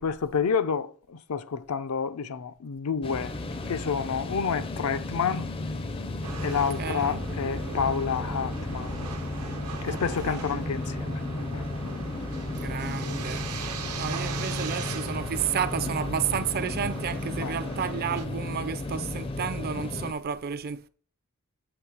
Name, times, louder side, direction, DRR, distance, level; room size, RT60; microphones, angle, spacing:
voice 1, 0.0-3.3 3.7-5.5 6.4-9.1 9.8-11.2 11.5-11.7 12.9-13.5 17.4-17.6, left 6 dB, 75° left, 0.5 m, -29 dB
sound 1, 3.0-20.1, left 2 dB, 25° left, 0.4 m, -34 dB
sound 2, 6.2-18.2, right 4 dB, 85° right, 1.0 m, -39 dB
voice 2, 6.8-7.2 9.9-10.0 10.2-10.6 12.6-13.4 14.0-20.9, right 7 dB, 45° right, 0.4 m, -31 dB
7.9 x 3.1 x 5.9 m
head